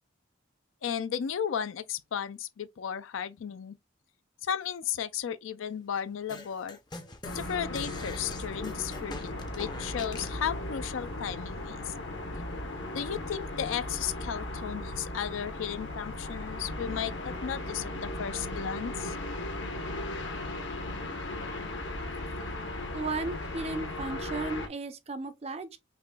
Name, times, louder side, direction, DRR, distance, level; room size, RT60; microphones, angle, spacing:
voice 1, 0.8-3.8 4.4-6.8 7.3-11.9 12.9-19.2, left 8 dB, 80° left, 0.4 m, -34 dB
sound 1, 6.3-10.4, left 3 dB, 20° left, 0.5 m, -44 dB
sound 2, 7.2-24.7, left 1 dB, 65° left, 0.8 m, -37 dB
voice 2, 22.9-25.8, right 3 dB, 30° right, 0.5 m, -35 dB
4.8 x 2.9 x 2.2 m
head